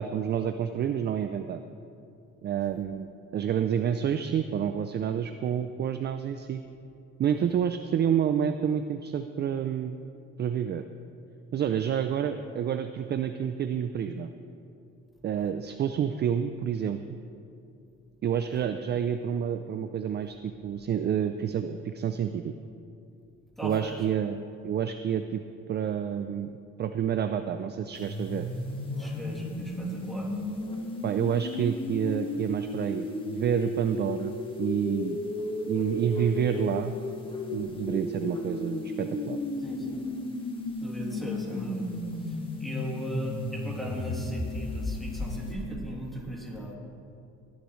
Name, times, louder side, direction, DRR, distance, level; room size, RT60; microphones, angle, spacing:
voice 1, 0.0-1.6 2.4-6.6 7.2-10.0 10.4-10.8 11.5-14.3 15.2-17.2 18.2-22.5 23.6-24.4 24.6-25.4 25.7-26.5 26.8-28.5 31.0-35.2 35.7-36.9 37.5-39.4, right 8 dB, 35° right, 9 dB, 0.4 m, -29 dB
voice 2, 23.6-24.0 29.0-30.3 39.6-40.0 40.8-46.8, equal, ahead, -4 dB, 2.9 m, -38 dB
sound 1, 27.9-45.6, left 2 dB, 15° left, 1.7 m, -34 dB
19.0 x 10.0 x 3.2 m, 2.6 s
cardioid pair, 105°, 30 cm